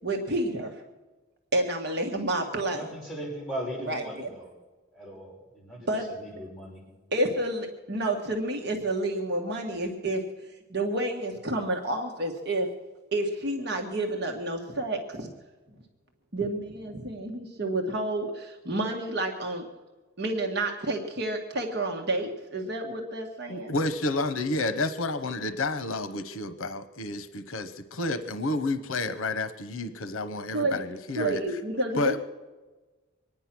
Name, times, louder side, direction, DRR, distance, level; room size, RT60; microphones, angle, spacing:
voice 1, 0.0-0.7 1.5-2.8 3.9-4.3 5.9-6.1 7.1-12.7 13.1-15.3 16.3-19.6 20.2-23.7 30.5-30.8 31.2-32.2, right 1 dB, 50° right, 2 dB, 1.5 m, -29 dB
voice 2, 2.7-4.5 4.9-5.9 6.2-6.8, equal, ahead, -7 dB, 6.3 m, -38 dB
voice 3, 23.5-31.4 31.9-32.2, left 2 dB, 85° left, 11 dB, 0.9 m, -30 dB
24.0 x 9.9 x 6.0 m, 1.2 s
head